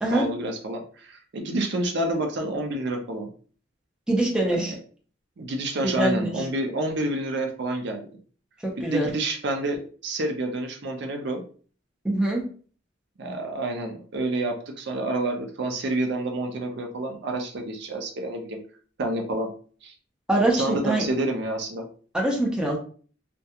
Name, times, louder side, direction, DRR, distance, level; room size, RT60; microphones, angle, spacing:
voice 1, 0.1-3.3 4.5-4.7 5.4-8.1 8.9-11.4 13.2-18.6 19.0-19.5 19.8-19.9 20.5-21.8, right 2 dB, 65° right, 4 dB, 0.5 m, -28 dB
voice 2, 4.1-4.7 5.8-6.4 8.8-9.1 12.0-12.4 20.3-21.1 22.1-22.8, right 1 dB, 5° right, -2 dB, 0.5 m, -23 dB
2.3 x 2.2 x 2.8 m, 0.42 s
head